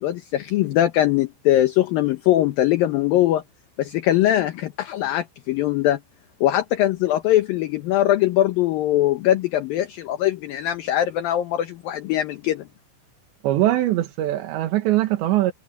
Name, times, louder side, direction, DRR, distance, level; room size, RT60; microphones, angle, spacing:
voice 1, 0.0-3.4 3.8-6.0 6.4-12.7, left 13 dB, 70° left, 2.3 m, -21 dB
voice 2, 13.4-15.5, right 14 dB, 80° right, 3.5 m, -21 dB
omnidirectional pair, 5.3 m